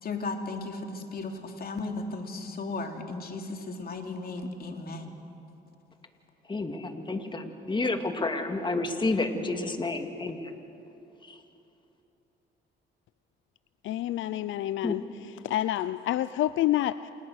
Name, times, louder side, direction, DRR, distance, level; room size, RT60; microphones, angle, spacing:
voice 1, 0.0-5.1, left 3 dB, 50° left, 4 dB, 3.0 m, -35 dB
voice 2, 6.5-10.5 11.2-11.4 14.8-15.0, left 2 dB, 25° left, 5 dB, 2.4 m, -30 dB
voice 3, 13.8-15.0 15.4-17.1, left 13 dB, 75° left, 15 dB, 0.5 m, -28 dB
28.5 x 28.0 x 6.5 m, 2.9 s
cardioid pair, 90°, 20 cm